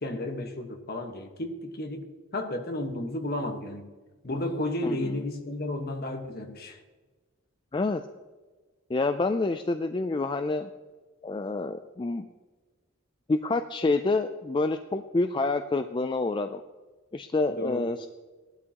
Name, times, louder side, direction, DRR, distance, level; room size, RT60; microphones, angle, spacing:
voice 1, 0.0-2.0 2.3-3.9 4.2-6.8 17.5-17.9, left 1 dB, 50° left, 1.4 m, -32 dB
voice 2, 7.7-8.0 8.9-10.7 11.2-12.3 13.3-16.6 17.1-18.1, left 3 dB, 25° left, 0.3 m, -27 dB
18.0 x 12.0 x 3.0 m
head